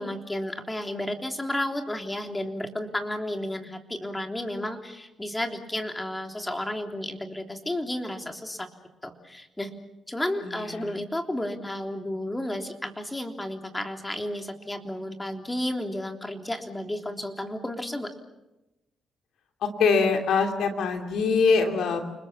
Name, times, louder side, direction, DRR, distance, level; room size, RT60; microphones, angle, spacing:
voice 1, 0.0-8.7 9.0-9.7 10.1-18.1, left 1 dB, 15° left, 5 dB, 3.5 m, -32 dB
voice 2, 10.4-10.9 19.6-22.0, left 5 dB, 75° left, 5 dB, 2.8 m, -23 dB
29.5 x 21.0 x 7.1 m, 0.97 s
supercardioid pair, 60°, 0 cm